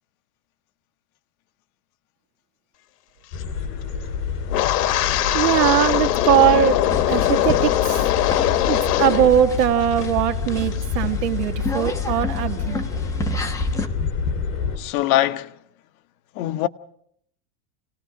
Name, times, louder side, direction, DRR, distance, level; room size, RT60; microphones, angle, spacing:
sound 1, 3.3-14.8, left 6 dB, 45° left, 5.7 m, -28 dB
Wind, 4.5-9.3 9.6-10.1 10.5-10.8, left 14 dB, 80° left, 1.4 m, -21 dB
voice 1, 5.3-6.8 7.1-8.1 8.7-12.8, right 11 dB, 90° right, 2.0 m, -20 dB
sound 2, 6.9-13.9, left 1 dB, 5° left, 1.0 m, -31 dB
voice 2, 14.8-15.5 16.3-16.7, left 14 dB, 65° left, 1.1 m, -22 dB
29.5 x 18.5 x 4.9 m
supercardioid pair, 170°, 46 cm